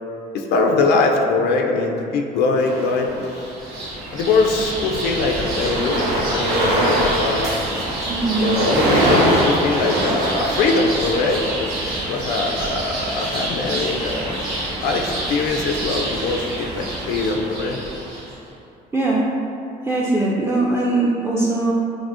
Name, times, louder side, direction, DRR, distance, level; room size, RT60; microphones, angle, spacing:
voice 1, 0.3-3.5 4.1-7.5 8.4-14.4 14.8-17.8, left 3 dB, 75° left, 2 dB, 0.4 m, -22 dB
sound 1, 2.6-3.6 4.3-4.6 4.8-11.3, right 1 dB, 85° right, 0.7 m, -22 dB
sound 2, 3.2-18.4, right 1 dB, 70° right, 1.3 m, -28 dB
voice 2, 8.1-8.5 18.9-19.2 19.8-21.7, right 2 dB, 15° right, -5 dB, 0.4 m, -20 dB
6.0 x 2.0 x 2.5 m, 2.8 s
cardioid pair, 110°, 17 cm